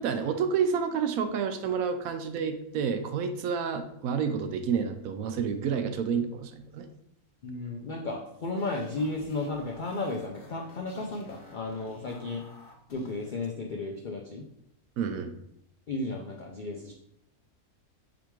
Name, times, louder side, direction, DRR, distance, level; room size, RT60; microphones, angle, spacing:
voice 1, 0.0-6.9 15.0-15.3, right 6 dB, 75° right, 8 dB, 1.0 m, -29 dB
voice 2, 7.4-12.4 12.9-14.4 15.9-16.9, left 2 dB, 80° left, 1 dB, 0.4 m, -34 dB
sound 1, 8.2-13.4, left 1 dB, 45° left, 0.9 m, -52 dB
4.9 x 3.5 x 3.0 m, 0.73 s
omnidirectional pair, 1.5 m